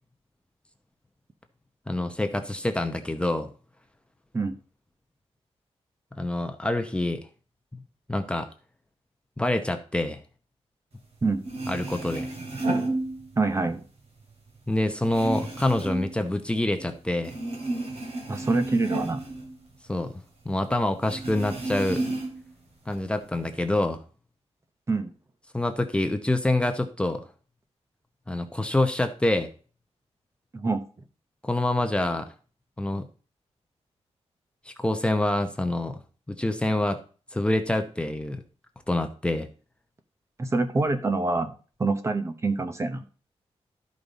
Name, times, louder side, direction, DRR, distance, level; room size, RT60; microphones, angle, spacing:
voice 1, 1.9-3.5 6.1-7.2 8.1-8.5 9.4-10.2 11.7-12.3 14.7-17.3 19.9-22.0 22.9-24.0 25.5-27.3 28.3-29.5 31.4-32.3 32.8-33.1 34.7-36.0 36.3-37.0 37.3-38.4 38.9-39.5, left 1 dB, 10° left, 6 dB, 0.8 m, -26 dB
sound 1, 11.1-11.2 11.4-13.6 14.0-16.9 17.2-20.2 20.5-20.6 21.0-22.5 22.9-23.7, right 2 dB, 65° right, 3.2 m, -32 dB
voice 2, 13.4-13.8 18.3-19.2 24.9-25.1 30.5-30.8 40.4-41.5 41.8-43.0, right 3 dB, 25° right, 8 dB, 0.9 m, -25 dB
13.0 x 5.3 x 4.1 m, 0.38 s
wide cardioid pair, 175°, 11 cm